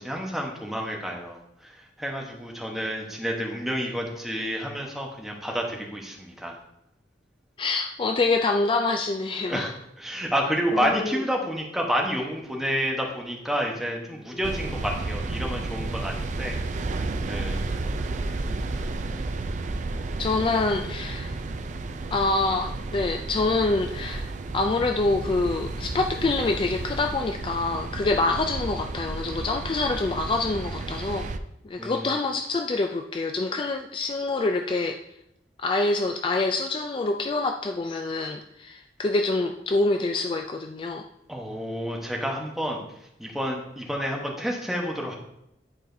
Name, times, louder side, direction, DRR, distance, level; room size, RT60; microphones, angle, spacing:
voice 1, 0.0-6.6 9.5-16.6 16.9-17.6 31.8-32.2 41.3-42.8 43.2-45.2, equal, ahead, -1 dB, 1.0 m, -30 dB
voice 2, 7.6-9.7 10.7-11.2 20.2-21.4 22.1-31.3 31.6-35.0 35.6-41.0, left 3 dB, 30° left, 5 dB, 0.3 m, -26 dB
sound 1, 14.4-31.4, right 2 dB, 45° right, 0.4 m, -32 dB
10.0 x 4.8 x 2.7 m, 0.80 s
head